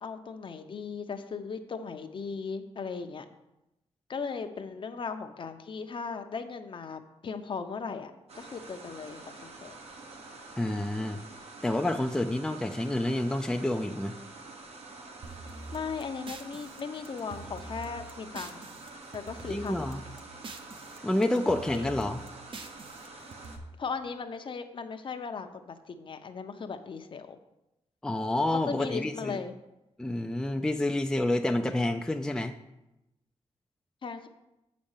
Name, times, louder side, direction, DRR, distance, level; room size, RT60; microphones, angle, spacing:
voice 1, 0.0-3.2 4.1-9.8 15.7-18.7 19.1-19.9 21.7-22.2 23.8-27.4 28.5-29.5 34.0-34.3, left 5 dB, 50° left, 7 dB, 0.8 m, -37 dB
sound 1, 8.3-23.6, right 3 dB, 65° right, 1.4 m, -47 dB
voice 2, 10.6-11.2 11.6-14.2 19.5-20.0 21.0-22.2 28.0-29.4 30.0-32.6, left 1 dB, 5° left, 5 dB, 0.4 m, -28 dB
sound 2, 15.2-18.9 19.1-21.0 21.2-23.6, right 3 dB, 50° right, 0.9 m, -45 dB
7.5 x 5.2 x 7.3 m, 0.93 s
wide cardioid pair, 120°, 11 cm